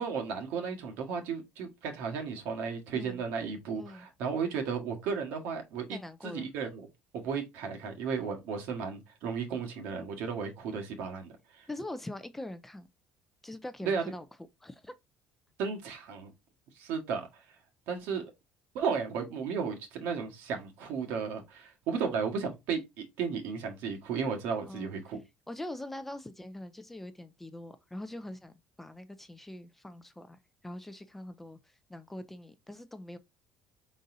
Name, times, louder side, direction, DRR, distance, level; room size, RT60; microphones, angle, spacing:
voice 1, 0.0-6.0 6.2-6.9 7.2-11.7 13.8-14.0 15.6-16.3 16.7-17.4 17.9-18.3 18.7-25.2, right 6 dB, 70° right, 1.4 m, -34 dB
voice 2, 3.7-4.1 5.9-6.5 11.7-12.9 13.4-14.3 14.6-14.9 24.7-24.9 25.5-33.2, left 1 dB, 5° left, 0.3 m, -43 dB
4.8 x 4.0 x 2.6 m
cardioid pair, 175°, 3 cm